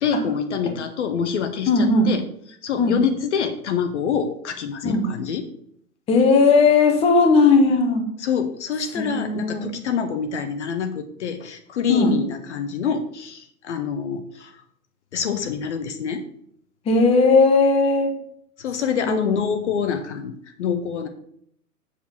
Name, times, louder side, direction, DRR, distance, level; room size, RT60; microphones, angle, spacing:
voice 1, 0.0-2.2 2.6-5.5 8.2-14.6 15.1-16.2 18.6-20.3 20.6-21.1, left 7 dB, 45° left, 8 dB, 0.8 m, -26 dB
voice 2, 1.7-2.1 2.8-3.0 4.8-5.1 6.1-8.0 8.9-9.7 11.9-12.1 16.9-18.1 19.1-19.4, left 3 dB, 15° left, 3 dB, 0.9 m, -17 dB
7.4 x 6.7 x 4.3 m, 0.70 s
figure-of-eight pair, 120°, 47 cm